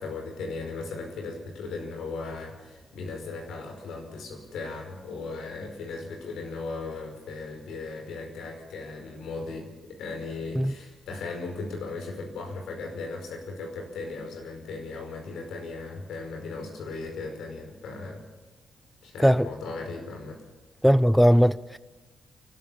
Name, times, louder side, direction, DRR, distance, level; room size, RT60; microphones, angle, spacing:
voice 1, 0.0-18.3 19.0-20.4, left 3 dB, 75° left, 5.1 m, -37 dB
voice 2, 20.8-21.8, equal, ahead, 0.6 m, -19 dB
29.5 x 13.0 x 7.1 m
hypercardioid pair, 45°, 0 cm